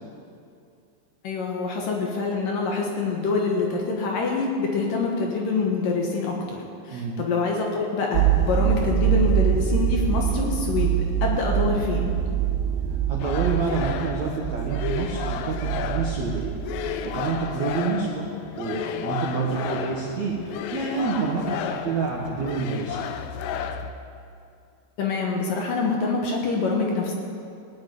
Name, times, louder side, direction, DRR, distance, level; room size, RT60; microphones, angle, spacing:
voice 1, 1.2-6.6 6.8-12.1 25.0-27.1, left 4 dB, 65° left, 0 dB, 2.6 m, -25 dB
sound 1, 8.1-17.2 17.4-17.6, right 10 dB, 80° right, 2.5 m, -25 dB
voice 2, 13.1-18.3 18.6-23.1, right 4 dB, 60° right, -2 dB, 1.9 m, -28 dB
sound 2, 13.2-23.9, left 8 dB, 85° left, 2.8 m, -33 dB
18.0 x 8.0 x 9.3 m, 2.4 s
omnidirectional pair, 5.0 m